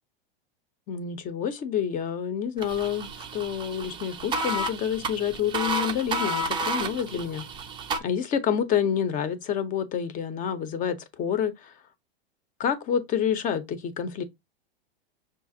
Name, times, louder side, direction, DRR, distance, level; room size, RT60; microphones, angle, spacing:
voice 1, 0.9-7.4 8.0-11.7 12.6-14.2, left 8 dB, 25° left, 0.7 m, -28 dB
sound 1, 2.6-8.0, right 2 dB, 15° right, 0.5 m, -31 dB
6.1 x 2.5 x 2.7 m
hypercardioid pair, 130°, 30 cm